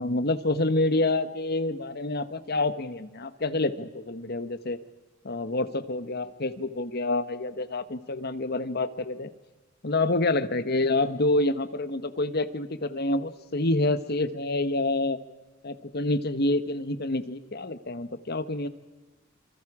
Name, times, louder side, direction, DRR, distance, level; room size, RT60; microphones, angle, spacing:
voice 1, 0.0-4.8 5.2-9.3 9.8-15.2 15.6-18.7, left 2 dB, 50° left, 11 dB, 1.2 m, -27 dB
26.5 x 25.5 x 4.9 m, 1.3 s
head